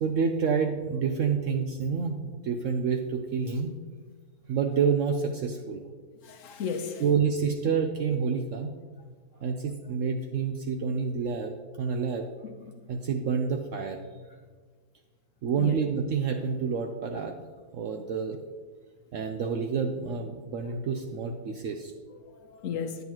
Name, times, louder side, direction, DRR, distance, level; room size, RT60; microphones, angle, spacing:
voice 1, 0.0-3.7 4.5-5.8 7.0-8.7 9.4-12.2 12.9-14.0 15.4-17.3 17.7-18.4 19.1-21.9, right 6 dB, 70° right, 0.7 m, -28 dB
voice 2, 6.2-7.0 12.7-12.8 15.5-15.8 22.1-23.0, left 6 dB, 60° left, 0.9 m, -35 dB
9.4 x 7.9 x 2.9 m
omnidirectional pair, 1.8 m